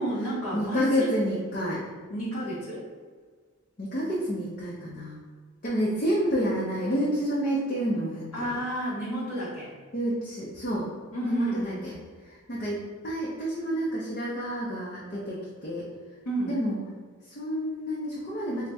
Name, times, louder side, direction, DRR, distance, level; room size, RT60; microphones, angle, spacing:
voice 1, 0.0-1.1 2.1-2.9 8.3-9.7 11.1-11.8 16.2-16.5, right 1 dB, 85° left, -8 dB, 0.9 m, -31 dB
voice 2, 0.5-1.8 3.8-5.2 5.6-8.6 9.9-10.9 11.2-12.0 12.2-15.8 16.4-16.8 17.2-18.7, equal, 40° left, -6 dB, 0.6 m, -29 dB
4.1 x 2.1 x 3.4 m, 1.5 s
head